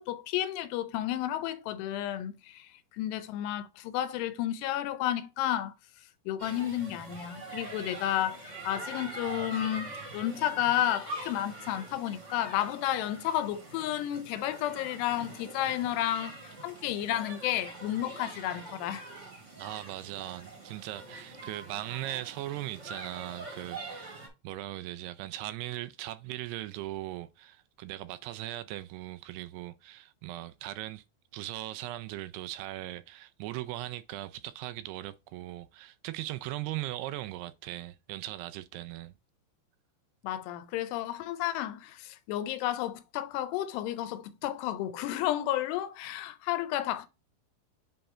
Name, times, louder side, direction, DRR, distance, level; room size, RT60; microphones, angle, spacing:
voice 1, 0.0-5.7 6.3-16.4 16.6-19.0 40.2-47.1, left 12 dB, 80° left, 2.7 m, -32 dB
sound 1, 6.4-24.3, right 2 dB, 35° right, 1.2 m, -44 dB
voice 2, 19.6-31.0 31.3-39.1, right 15 dB, 85° right, 2.5 m, -39 dB
7.9 x 3.3 x 4.3 m
omnidirectional pair, 4.8 m